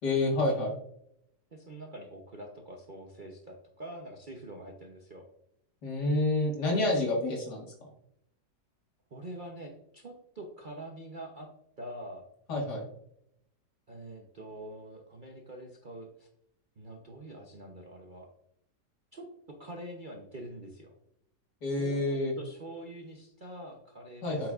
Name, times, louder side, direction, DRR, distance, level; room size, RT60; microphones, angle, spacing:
voice 1, 0.0-0.8 5.8-7.7 12.5-12.8 21.6-22.3 24.2-24.5, left 2 dB, 65° left, -1 dB, 2.4 m, -28 dB
voice 2, 1.5-5.2 9.1-11.5 11.8-12.3 13.9-16.3 16.8-18.3 19.1-19.3 19.6-20.9 21.7-24.5, right 1 dB, 40° right, 1 dB, 0.7 m, -45 dB
8.6 x 6.0 x 2.5 m, 0.75 s
omnidirectional pair, 1.9 m